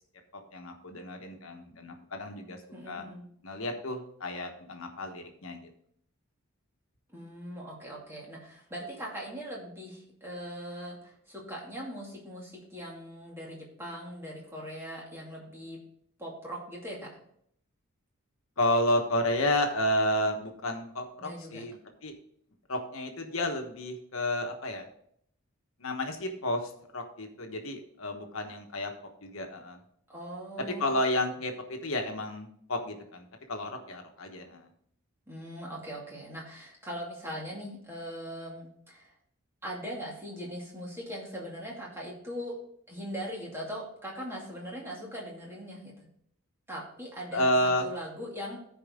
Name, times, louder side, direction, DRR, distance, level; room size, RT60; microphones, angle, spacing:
voice 1, 0.5-2.6 2.9-3.0 3.4-5.6 18.6-22.1 22.7-24.8 25.8-28.9 29.2-29.8 30.6-34.7 47.3-47.9, left 1 dB, 70° left, 4 dB, 1.3 m, -31 dB
voice 2, 2.7-3.3 7.1-15.8 16.2-17.1 21.2-21.6 30.1-30.9 35.3-39.1 39.6-42.5 42.9-45.9 46.7-47.5 47.8-48.6, equal, 10° right, -4 dB, 2.4 m, -40 dB
14.0 x 4.8 x 3.7 m, 0.68 s
head